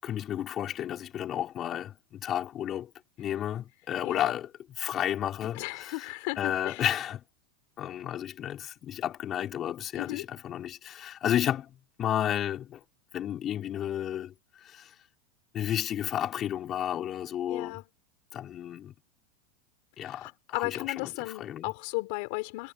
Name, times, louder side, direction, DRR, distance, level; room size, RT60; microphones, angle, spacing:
voice 1, 0.0-2.9 3.2-4.5 4.8-6.1 6.4-7.2 7.8-12.8 13.1-14.3 14.6-14.9 15.5-17.8 18.3-18.9 20.0-21.7, left 10 dB, 30° left, 6.0 m, -32 dB
voice 2, 4.0-4.3 5.5-6.9 9.9-10.2 17.5-17.8 20.0-22.7, left 28 dB, 55° left, 4.5 m, -35 dB
supercardioid pair, 140°, 0 cm